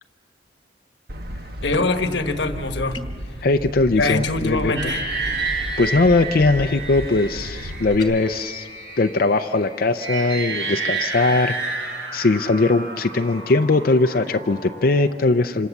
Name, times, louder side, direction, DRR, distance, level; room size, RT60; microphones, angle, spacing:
sound 1, 1.1-7.9, equal, 60° right, 1.2 m, -34 dB
voice 1, 1.6-3.0 4.0-5.0, left 3 dB, 85° left, 8 dB, 1.3 m, -23 dB
sound 2, 2.9-3.3 7.9-8.2, left 3 dB, 25° left, 1.2 m, -38 dB
voice 2, 3.4-4.7 5.4-8.7 9.0-15.7, left 3 dB, 55° left, 7 dB, 0.5 m, -20 dB
sound 3, 4.8-15.0, right 3 dB, 85° right, 6.5 m, -30 dB
26.5 x 26.0 x 7.2 m, 2.4 s
head